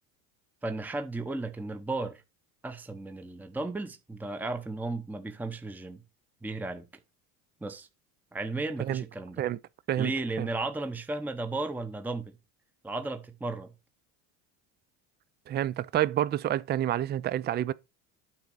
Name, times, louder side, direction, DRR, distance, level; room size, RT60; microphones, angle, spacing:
voice 1, 0.6-2.2 2.6-6.0 6.4-6.9 7.6-7.9 8.3-9.4 10.0-12.3 12.8-13.7, right 2 dB, 5° right, 0.8 m, -34 dB
voice 2, 15.5-17.7, right 12 dB, 25° right, 0.4 m, -28 dB
8.8 x 3.9 x 6.1 m
supercardioid pair, 95°, 43 cm